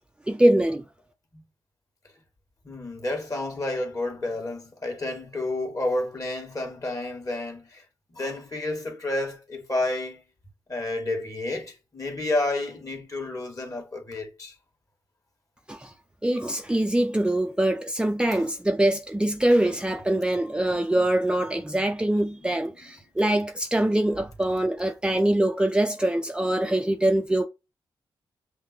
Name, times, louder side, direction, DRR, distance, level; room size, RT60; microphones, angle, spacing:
voice 1, 0.3-0.8 15.7-15.9 16.2-27.5, right 1 dB, 10° right, 0.6 m, -23 dB
voice 2, 2.6-7.8 8.1-10.2 10.7-14.5 18.3-18.5 19.6-19.8 22.4-22.9, left 2 dB, 40° left, 2.1 m, -30 dB
5.7 x 2.1 x 4.4 m
cardioid pair, 55°, 9 cm